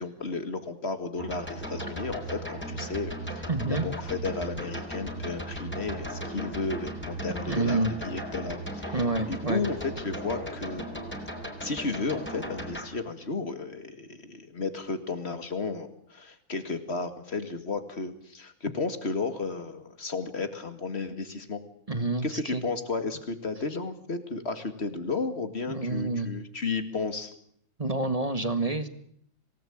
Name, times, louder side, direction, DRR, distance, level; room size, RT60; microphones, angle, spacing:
voice 1, 0.0-9.0 9.3-10.9 11.6-21.6 22.2-27.3, left 3 dB, 35° left, 10 dB, 2.3 m, -33 dB
sound 1, 1.2-12.9, right 1 dB, 5° left, 4.1 m, -37 dB
voice 2, 3.5-3.9 7.5-7.9 8.9-9.6 21.9-22.6 25.7-26.3 27.8-28.9, right 2 dB, 20° right, 10 dB, 1.6 m, -28 dB
26.0 x 18.5 x 8.7 m, 0.68 s
omnidirectional pair, 2.1 m